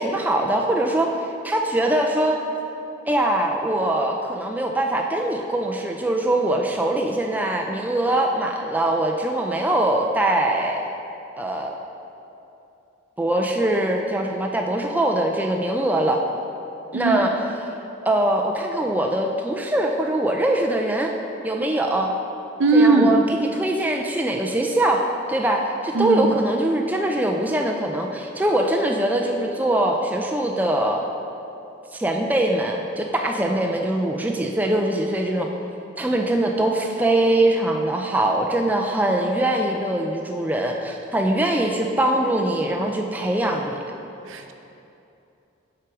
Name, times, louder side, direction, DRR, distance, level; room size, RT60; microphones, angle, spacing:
voice 1, 0.0-2.4 3.1-10.9 11.4-11.7 13.2-16.2 16.9-17.3 18.1-21.1 21.4-22.1 22.7-31.1 31.9-35.5 36.0-43.8, right 1 dB, 10° right, 1 dB, 0.3 m, -22 dB
voice 2, 16.9-17.5 22.6-23.2 25.9-26.3 44.3-44.5, right 3 dB, 80° right, 5 dB, 0.5 m, -19 dB
6.0 x 5.9 x 4.7 m, 2.8 s
head